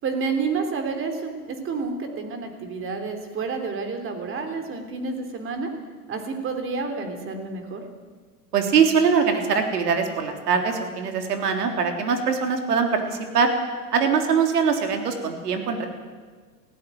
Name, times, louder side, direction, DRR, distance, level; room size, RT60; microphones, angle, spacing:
voice 1, 0.0-5.7 6.1-7.8, right 4 dB, 25° right, 6 dB, 3.4 m, -29 dB
voice 2, 8.5-13.5 13.9-15.9, right 6 dB, 85° right, 4 dB, 3.5 m, -22 dB
18.0 x 15.5 x 9.3 m, 1.5 s
hypercardioid pair, 125°, 46 cm